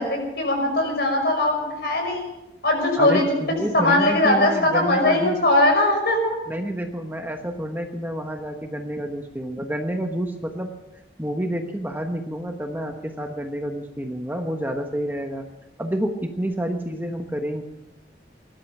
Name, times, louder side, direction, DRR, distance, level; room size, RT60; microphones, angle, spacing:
voice 1, 0.0-2.3 2.6-3.3 3.7-6.4, left 1 dB, 60° left, 2 dB, 5.6 m, -20 dB
voice 2, 3.0-5.4 6.5-10.7 11.2-15.4 15.8-17.6, right 1 dB, 10° right, 4 dB, 1.1 m, -29 dB
20.0 x 12.0 x 6.1 m, 0.95 s
head